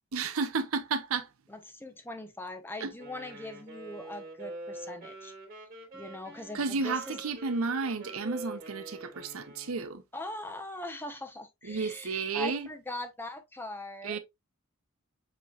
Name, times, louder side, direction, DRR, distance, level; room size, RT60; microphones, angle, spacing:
voice 1, 0.1-1.3 2.8-3.0 3.4-3.5 6.5-10.0 11.6-12.7 14.0-14.2, right 4 dB, 90° right, 0.7 m, -32 dB
voice 2, 1.5-5.3 5.9-7.2 10.1-14.2, left 1 dB, 10° left, 0.8 m, -41 dB
Wind instrument woodwind instrument, 3.0-10.0, right 2 dB, 45° right, 2.9 m, -45 dB
7.4 x 3.1 x 2.3 m
head